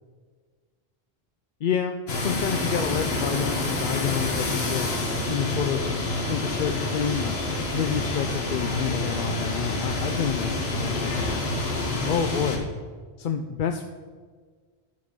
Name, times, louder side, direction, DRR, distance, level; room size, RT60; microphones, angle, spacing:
voice 1, 1.6-4.9 5.3-5.9 6.2-7.4 7.7-11.4 12.1-12.7 13.2-13.8, left 7 dB, 60° left, 7 dB, 0.6 m, -29 dB
sound 1, 2.1-12.6, left 2 dB, 75° left, 1.7 m, -28 dB
12.0 x 5.1 x 6.0 m, 1.5 s
omnidirectional pair, 1.1 m